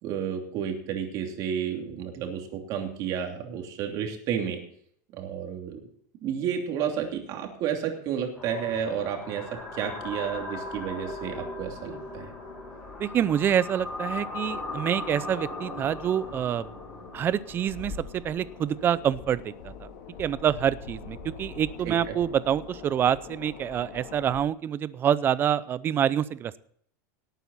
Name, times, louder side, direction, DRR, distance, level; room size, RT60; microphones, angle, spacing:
voice 1, 0.0-4.6 5.1-5.8 6.2-9.5 9.7-12.3 21.8-22.2, right 8 dB, 40° right, 3 dB, 2.9 m, -31 dB
sound 1, 8.3-18.5, left 2 dB, 15° left, 6.1 m, -38 dB
sound 2, 9.5-24.4, left 5 dB, 65° left, 4.3 m, -45 dB
voice 2, 13.0-16.7 17.1-17.9 18.2-19.7 20.2-26.6, right 9 dB, 20° right, 18 dB, 0.5 m, -26 dB
18.5 x 9.1 x 4.1 m, 0.62 s
supercardioid pair, 160°, 10 cm